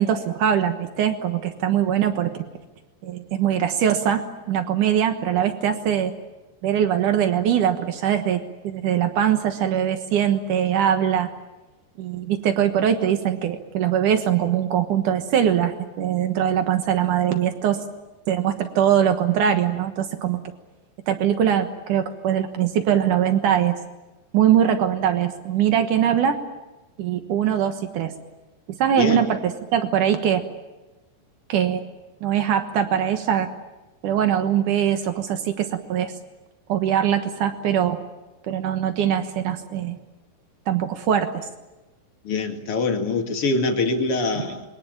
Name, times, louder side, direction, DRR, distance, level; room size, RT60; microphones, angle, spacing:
voice 1, 0.0-2.4 3.0-6.1 6.6-11.3 12.0-17.8 18.3-20.4 21.1-23.8 24.3-26.4 27.0-28.1 28.8-30.4 31.5-31.8 32.2-33.5 34.0-36.1 36.7-38.0 38.4-40.0 40.7-41.5 44.4-44.5, right 9 dB, 85° right, 7 dB, 1.8 m, -22 dB
voice 2, 29.0-29.3 42.2-44.6, left 3 dB, 40° left, 3 dB, 2.2 m, -24 dB
27.0 x 23.0 x 9.0 m, 1.1 s
omnidirectional pair, 5.8 m